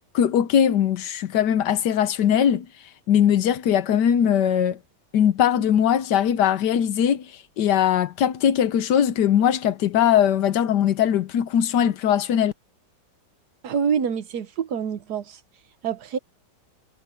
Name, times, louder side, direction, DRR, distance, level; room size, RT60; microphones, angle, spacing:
voice 1, 0.1-2.7 3.1-4.8 5.1-7.3 7.6-12.5, left 9 dB, 80° left, 1.5 m, -20 dB
voice 2, 13.6-15.4 15.8-16.2, right 7 dB, 70° right, 1.5 m, -26 dB
omnidirectional pair, 1.8 m